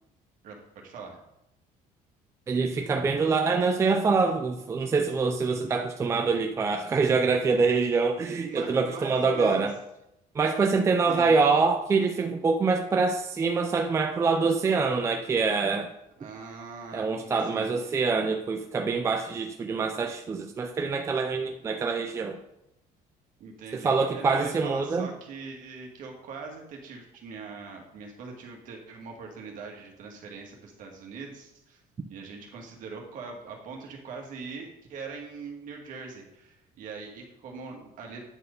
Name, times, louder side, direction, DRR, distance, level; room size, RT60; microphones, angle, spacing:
voice 1, 0.4-1.2 8.4-9.7 11.1-11.3 16.2-17.9 23.4-31.8 32.1-38.2, right 4 dB, 55° right, 1 dB, 1.7 m, -42 dB
voice 2, 2.5-9.8 10.3-15.9 16.9-22.4 23.7-25.1, right 4 dB, 20° right, 4 dB, 0.4 m, -25 dB
8.8 x 4.4 x 5.1 m, 0.84 s
cardioid pair, 175°, 16 cm